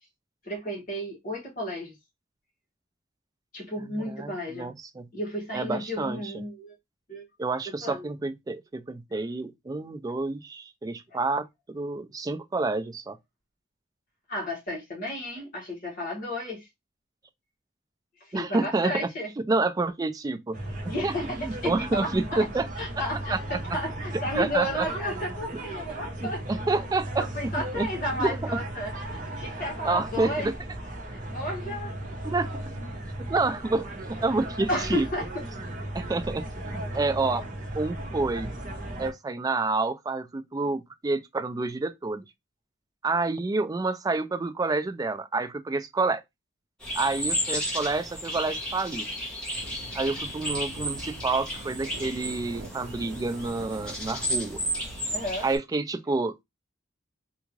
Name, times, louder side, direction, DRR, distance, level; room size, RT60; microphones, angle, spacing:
voice 1, 0.4-1.9 3.5-4.7 5.1-6.7 7.1-7.3 7.8-8.0 9.1-9.2 11.1-11.2 14.3-16.7 18.2-19.3 20.9-22.4 22.8-26.4 27.2-30.5 31.1-31.9 34.7-35.2 55.1-55.5, left 1 dB, 45° left, 1.7 m, -33 dB
voice 2, 3.9-5.1 5.5-6.3 7.4-13.2 18.3-19.1 19.5-20.6 21.0-21.1 21.4-22.7 23.3-23.4 24.3-24.9 26.2-27.5 27.7-27.9 28.2-28.4 29.8-30.5 32.2-32.5 33.3-35.1 35.9-36.5 36.7-37.4 37.7-38.5 39.0-42.2 43.0-46.2 47.0-49.1 49.9-54.6 55.4-56.4, right 3 dB, 20° right, 0.3 m, -28 dB
sound 1, 20.5-39.1, right 1 dB, 45° right, 0.8 m, -36 dB
sound 2, 46.8-55.6, equal, 5° left, 1.0 m, -33 dB
sound 3, 49.6-55.4, right 2 dB, 75° right, 0.5 m, -44 dB
3.5 x 2.4 x 3.1 m
head